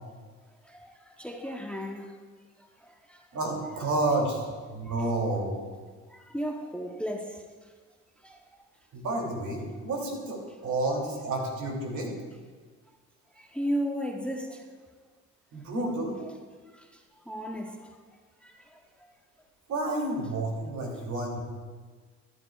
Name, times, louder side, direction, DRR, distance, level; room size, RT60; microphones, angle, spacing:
voice 1, 0.6-2.2 2.8-3.2 4.9-5.1 6.1-7.4 8.2-8.4 13.4-14.6 16.2-16.3 16.7-16.9 17.3-17.9 18.4-18.8, equal, 5° left, 0.9 m, -35 dB
voice 2, 3.3-5.5 8.9-12.1 15.5-16.2 19.7-21.4, right 2 dB, 70° right, 2.7 m, -30 dB
14.0 x 11.0 x 2.4 m
cardioid pair, 90°, 30 cm